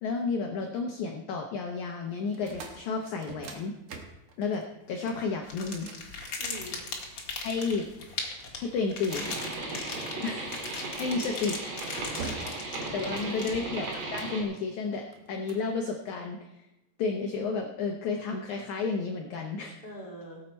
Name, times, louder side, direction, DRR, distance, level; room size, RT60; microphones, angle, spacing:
voice 1, 0.0-3.7 4.4-4.6 4.9-5.9 7.4-7.8 8.6-9.3 10.2-11.6 12.9-16.7 17.0-19.7, left 4 dB, 80° left, 3 dB, 1.7 m, -32 dB
sound 1, 2.3-7.0 7.7-9.0 10.8-11.1 11.6-11.8 12.2-12.7 13.0-14.6 15.1-15.7, right 4 dB, 75° right, 1.3 m, -45 dB
sound 2, 5.4-13.9, left 4 dB, 50° left, 2.0 m, -39 dB
voice 2, 6.4-6.8 11.0-11.4 12.9-13.6 19.8-20.4, right 1 dB, 20° right, -4 dB, 1.5 m, -42 dB
sound 3, 9.1-14.4, right 2 dB, 55° right, 4.0 m, -36 dB
18.0 x 8.2 x 4.3 m, 0.94 s
omnidirectional pair, 4.6 m